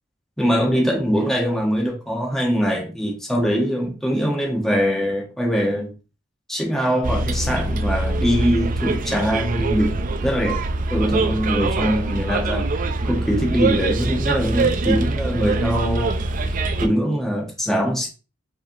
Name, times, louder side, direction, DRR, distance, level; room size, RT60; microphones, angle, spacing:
voice 1, 0.4-5.9 6.5-10.6 10.9-12.7 13.0-16.2 16.8-18.1, equal, ahead, 0.9 m, -22 dB
Bus, 7.0-16.9, right 2 dB, 45° right, 0.4 m, -23 dB
5.0 x 3.3 x 2.6 m
head